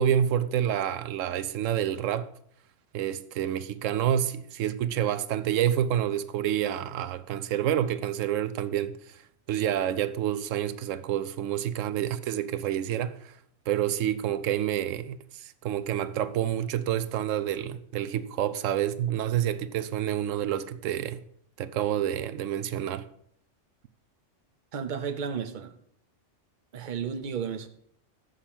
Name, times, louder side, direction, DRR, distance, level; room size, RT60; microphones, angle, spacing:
voice 1, 0.0-2.3 2.9-9.2 9.5-13.3 13.7-21.2 21.6-23.1, right 10 dB, 90° right, 1.0 m, -28 dB
voice 2, 24.7-25.7 26.7-27.7, right 7 dB, 45° right, 0.9 m, -33 dB
7.3 x 6.6 x 7.2 m
omnidirectional pair, 1.3 m